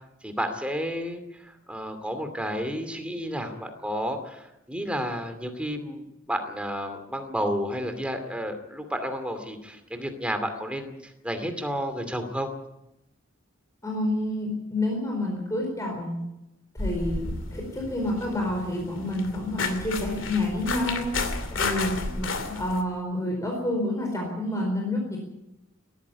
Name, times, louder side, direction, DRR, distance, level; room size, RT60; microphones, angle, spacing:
voice 1, 0.2-12.5, equal, 5° right, 7 dB, 2.4 m, -31 dB
voice 2, 13.8-16.2 16.8-21.1 21.5-25.2, left 1 dB, 15° left, 0 dB, 4.4 m, -29 dB
sound 1, 16.8-22.8, left 3 dB, 65° left, 2.6 m, -32 dB
19.0 x 14.5 x 9.7 m, 0.92 s
head